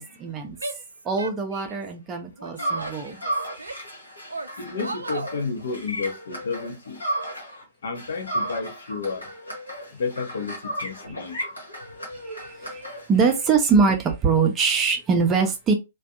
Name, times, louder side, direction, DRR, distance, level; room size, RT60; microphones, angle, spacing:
voice 1, 0.0-3.2 12.2-15.7, right 5 dB, 20° right, 0.5 m, -23 dB
Female speech woman speaking / Yell, 0.6-1.9 2.4-3.9 4.3-5.4, right 2 dB, 75° right, 0.3 m, -36 dB
sound 1, 2.6-7.6 7.9-13.5, right 1 dB, 80° left, 1.1 m, -34 dB
voice 2, 4.6-7.0 7.8-9.3 10.0-11.4, left 4 dB, 60° left, 0.7 m, -31 dB
2.5 x 2.3 x 2.3 m
figure-of-eight pair, 115°, 0 cm